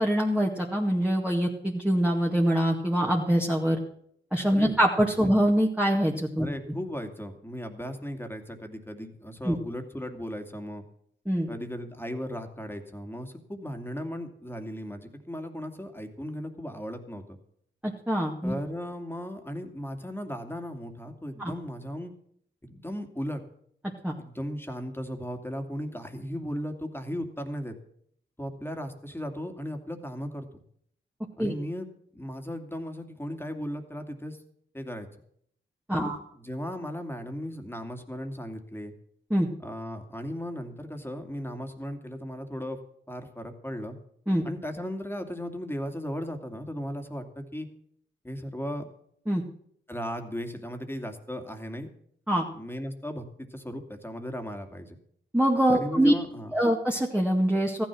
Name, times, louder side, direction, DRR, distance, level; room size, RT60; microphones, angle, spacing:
voice 1, 0.0-3.8 4.3-6.5 9.4-9.6 11.3-11.5 17.8-18.5 21.4-21.5 24.0-24.2 31.4-31.5 35.9-36.2 39.3-39.5 44.3-44.4 49.3-49.4 52.3-52.5 55.3-56.1 56.5-57.8, equal, 5° right, -1 dB, 2.0 m, -24 dB
voice 2, 6.4-10.8 11.5-17.4 18.4-22.1 22.6-23.4 24.2-27.7 28.4-30.5 31.4-34.4 34.7-35.1 35.9-38.9 39.6-42.8 43.1-44.0 44.4-47.7 48.2-48.9 49.9-51.9 52.5-53.2 53.5-55.0 55.7-56.5, equal, 10° left, 5 dB, 2.5 m, -36 dB
14.5 x 10.5 x 6.2 m, 0.67 s
cardioid pair, 50°, 21 cm